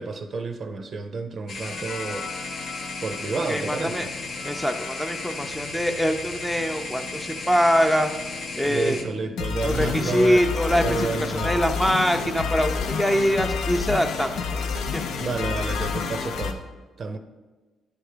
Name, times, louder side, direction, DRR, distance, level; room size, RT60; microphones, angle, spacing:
voice 1, 0.0-2.3 3.0-4.0 8.7-10.4 10.7-11.6 15.2-16.6 17.0-17.2, right 4 dB, 45° right, 7 dB, 0.6 m, -30 dB
sound 1, 1.5-9.0, left 3 dB, 60° left, 1.0 m, -35 dB
sound 2, 1.6-16.5, left 5 dB, 75° left, 0.6 m, -31 dB
voice 2, 3.3-4.1 4.4-8.1 8.5-9.1 9.6-15.1, equal, 5° left, 5 dB, 0.5 m, -24 dB
10.0 x 3.4 x 5.0 m, 1.3 s
cardioid pair, 90°, 0 cm